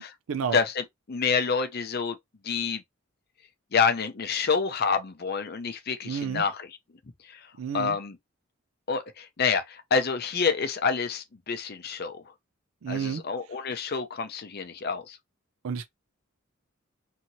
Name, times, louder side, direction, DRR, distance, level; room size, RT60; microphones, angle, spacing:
voice 1, 0.5-2.2 2.4-2.8 3.7-6.8 7.3-7.5 7.7-8.2 8.9-12.2 12.9-15.2, left 5 dB, 50° left, 0.6 m, -28 dB
voice 2, 6.0-6.4 7.6-7.9 12.8-13.2 15.6-15.9, right 6 dB, 90° right, 0.4 m, -30 dB
2.9 x 2.7 x 2.7 m
head